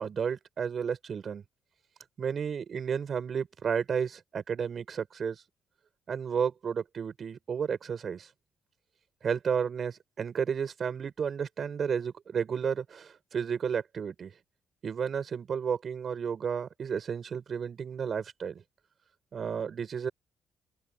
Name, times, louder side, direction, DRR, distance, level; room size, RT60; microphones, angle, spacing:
voice 1, 0.0-1.4 2.2-5.4 6.1-8.3 9.2-14.3 14.8-18.6 19.3-20.1, right 7 dB, 50° right, 7.6 m, -32 dB
open air
cardioid pair, 90°, 0 cm